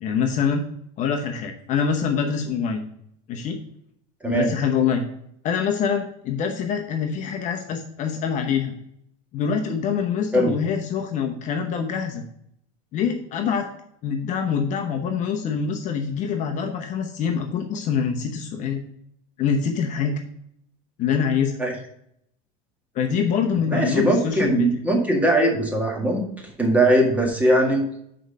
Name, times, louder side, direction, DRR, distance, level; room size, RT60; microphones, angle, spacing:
voice 1, 0.0-0.6 1.0-2.8 3.3-3.6 4.3-5.0 5.4-8.7 9.3-12.2 12.9-13.7 14.0-18.8 19.4-20.2 21.0-21.6 22.9-24.7, left 6 dB, 40° left, 4 dB, 0.9 m, -25 dB
voice 2, 23.7-26.2 26.6-27.8, right 1 dB, 10° right, 0 dB, 1.8 m, -20 dB
6.3 x 4.7 x 6.4 m, 0.72 s
supercardioid pair, 145°, 19 cm